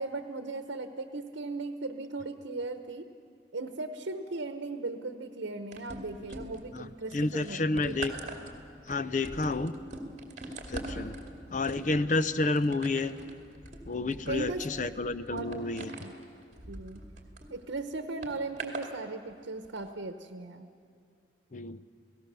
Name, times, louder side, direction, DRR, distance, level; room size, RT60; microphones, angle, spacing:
voice 1, 0.0-3.1 3.5-8.0 14.3-14.7 15.3-15.6 16.0-16.1 16.7-17.0 17.5-20.7, right 3 dB, 90° right, 8 dB, 0.9 m, -37 dB
sound 1, 5.7-6.8 7.1-17.5 18.2-18.9 19.6-19.8, right 2 dB, 40° right, 2.4 m, -42 dB
voice 2, 7.1-8.1 8.9-9.7 10.7-11.2 11.5-13.1 13.9-15.9 21.5-21.8, left 3 dB, 40° left, 14 dB, 0.6 m, -30 dB
29.5 x 18.0 x 6.9 m, 2.3 s
head